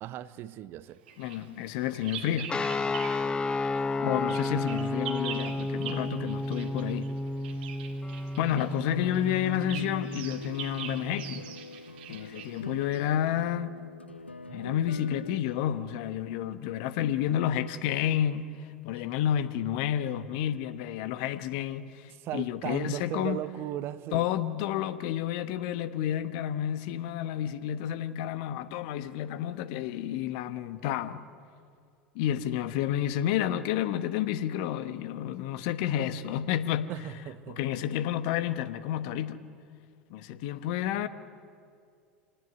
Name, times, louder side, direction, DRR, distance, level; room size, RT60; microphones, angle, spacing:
voice 1, 0.0-1.0 14.5-14.7 18.9-19.0 22.2-24.3 36.9-37.6, right 13 dB, 40° right, 0.8 m, -37 dB
Bird vocalization bird call bird song, 1.1-3.3 3.6-13.1, right 9 dB, 60° right, 2.1 m, -44 dB
voice 2, 1.2-2.5 4.0-7.1 8.4-11.5 12.1-13.7 14.5-23.4 24.1-31.3 32.1-36.9 37.5-39.4 40.1-41.1, left 11 dB, 50° left, 1.1 m, -30 dB
sound 1, 2.5-11.4, left 2 dB, 15° left, 1.0 m, -32 dB
sound 2, 8.8-15.4, left 2 dB, 85° left, 0.6 m, -43 dB
26.5 x 18.5 x 9.5 m
figure-of-eight pair, 80°, 6 cm